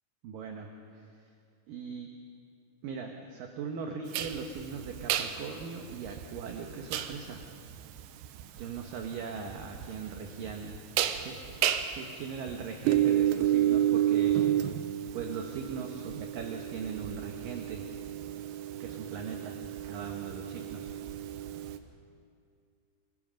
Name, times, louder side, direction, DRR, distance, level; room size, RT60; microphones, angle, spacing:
voice 1, 0.2-1.1 1.7-2.1 2.8-7.4 8.5-10.8 11.2-11.4 11.9-14.4 15.1-17.9 18.8-19.6 19.8-20.9, right 5 dB, 65° right, 3 dB, 2.4 m, -39 dB
sound 1, 4.1-21.8, right 12 dB, 85° right, 3.1 m, -31 dB
27.5 x 20.0 x 5.2 m, 2.3 s
omnidirectional pair, 4.9 m